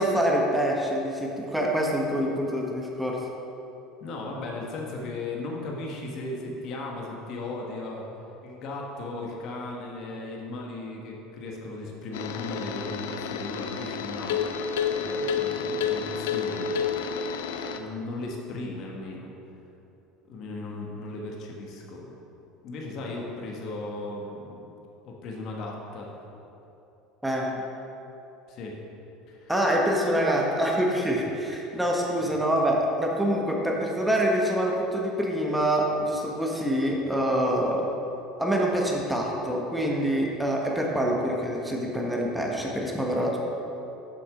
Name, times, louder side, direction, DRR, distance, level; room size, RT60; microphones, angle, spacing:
voice 1, 0.0-3.2 27.2-27.6 29.5-37.9 38.4-43.4, equal, 5° right, -1 dB, 1.2 m, -25 dB
voice 2, 4.0-16.8 17.8-19.3 20.3-22.1 22.6-24.6 25.0-26.3 28.5-28.8 29.3-29.5 32.2-32.3, left 2 dB, 55° left, -1 dB, 1.3 m, -36 dB
sound 1, 12.1-17.8, left 6 dB, 85° left, 0.5 m, -30 dB
7.3 x 5.9 x 5.1 m, 2.9 s
supercardioid pair, 95°, 0 cm